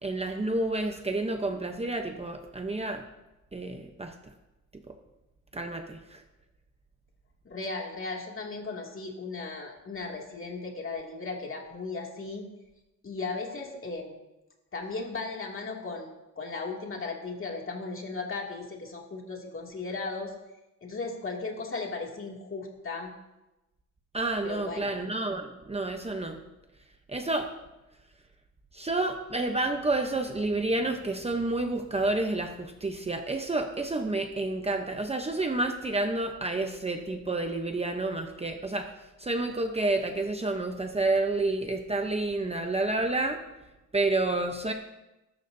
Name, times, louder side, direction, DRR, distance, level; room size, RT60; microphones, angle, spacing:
voice 1, 0.0-3.0 3.5-4.1 5.5-6.2 24.1-26.4 27.1-27.5 28.7-38.9 39.2-43.4 43.9-44.7, right 2 dB, 20° right, 4 dB, 0.8 m, -29 dB
voice 2, 7.4-12.5 13.0-14.1 14.7-16.1 16.4-20.3 20.8-23.1 24.4-24.9, left 3 dB, 40° left, -1 dB, 2.4 m, -36 dB
20.5 x 12.5 x 2.7 m, 0.99 s
wide cardioid pair, 155°, 32 cm